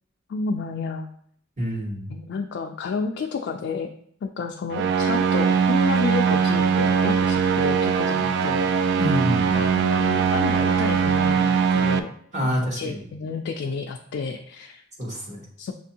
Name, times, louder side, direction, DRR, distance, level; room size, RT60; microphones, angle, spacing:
voice 1, 0.3-1.1 2.1-3.9 4.2-8.7 9.4-12.1 12.4-14.8 15.6-15.7, left 4 dB, 60° left, 3 dB, 0.3 m, -30 dB
voice 2, 1.6-2.1 9.0-9.6 12.3-13.0 15.0-15.4, equal, 35° right, -3 dB, 1.1 m, -27 dB
sound 1, 4.7-12.0, right 6 dB, 60° right, 0.3 m, -21 dB
6.5 x 2.6 x 2.7 m, 0.65 s
head